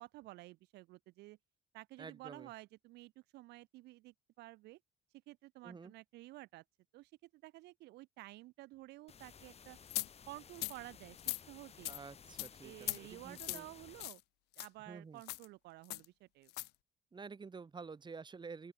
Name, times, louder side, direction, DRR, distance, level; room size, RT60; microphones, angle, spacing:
voice 1, 0.0-1.4 1.7-4.8 5.3-6.6 6.9-9.8 10.3-11.9 12.6-14.2 14.6-16.5, right 19 dB, 80° right, 0.8 m, -53 dB
voice 2, 2.0-2.5 5.6-5.9 11.9-13.7 14.9-15.2 17.1-18.7, right 5 dB, 25° right, 4.0 m, -50 dB
sound 1, 9.1-14.1, left 7 dB, 40° left, 2.2 m, -57 dB
sound 2, 9.9-10.1 10.5-10.8 11.2-11.4 11.8-12.0 12.4-12.5 12.8-13.0 13.3-13.6 14.0-14.2 14.5-14.7 15.2-15.4 15.9-16.0 16.5-16.7, left 20 dB, 80° left, 0.4 m, -39 dB
open air
cardioid pair, 110°, 17 cm